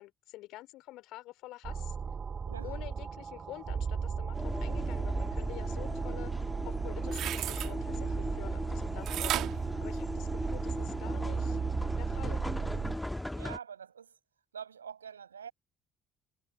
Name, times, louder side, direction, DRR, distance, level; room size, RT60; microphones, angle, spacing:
voice 1, 0.0-1.9 2.6-11.6 12.0-12.4, left 17 dB, 60° left, 3.2 m, -47 dB
sound 1, 1.6-13.0, right 6 dB, 35° right, 3.8 m, -36 dB
sound 2, 4.3-13.6, left 1 dB, 5° left, 1.5 m, -38 dB
sound 3, 6.8-7.7 9.1-10.6 11.1-11.2, right 13 dB, 55° right, 2.0 m, -35 dB
voice 2, 13.4-14.2 14.5-15.5, right 7 dB, 85° right, 5.2 m, -45 dB
figure-of-eight pair, 50°, 0 cm